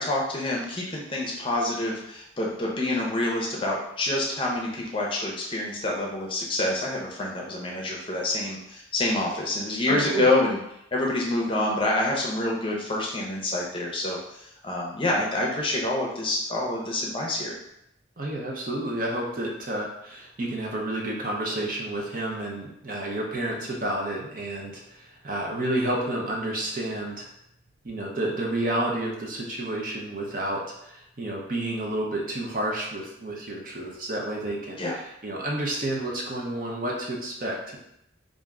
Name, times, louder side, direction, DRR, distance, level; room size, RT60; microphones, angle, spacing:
voice 1, 0.0-10.6 10.9-17.5 34.8-35.0, left 2 dB, 25° left, -2 dB, 0.6 m, -27 dB
voice 2, 9.9-10.2 18.2-27.3 27.8-37.8, right 1 dB, 45° right, -1 dB, 0.7 m, -30 dB
3.4 x 2.5 x 3.6 m, 0.79 s
head